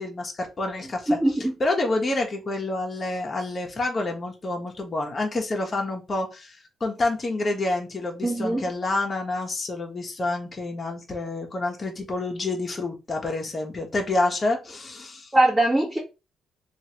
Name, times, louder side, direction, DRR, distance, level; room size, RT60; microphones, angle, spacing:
voice 1, 0.0-1.2 1.6-15.3, left 2 dB, 30° left, 1.0 m, -28 dB
voice 2, 1.1-1.5 8.2-8.6 15.3-16.0, right 1 dB, 15° right, 1.2 m, -21 dB
3.0 x 2.5 x 2.9 m
cardioid pair, 90°, 0 cm